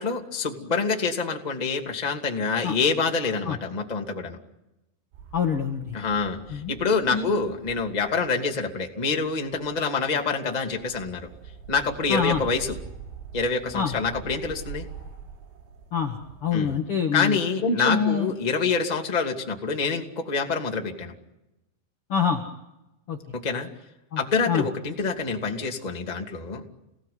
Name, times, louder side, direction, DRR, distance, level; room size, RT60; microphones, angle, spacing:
voice 1, 0.0-4.4 5.9-11.3 11.7-12.8 13.3-14.8 16.5-16.7 17.1-21.1 23.3-23.7 24.1-26.6, left 4 dB, 20° left, 2 dB, 1.1 m, -26 dB
sound 1, 5.1-16.9, right 6 dB, 85° right, 5.7 m, -44 dB
voice 2, 5.3-6.0 6.5-6.7 7.1-7.3 12.1-12.4 13.7-13.9 15.9-17.4 17.6-18.3 22.1-22.4 23.1-23.2 24.1-24.2 24.5-24.6, left 6 dB, 75° left, 3 dB, 1.2 m, -25 dB
29.0 x 18.5 x 9.6 m, 0.92 s
omnidirectional pair, 5.7 m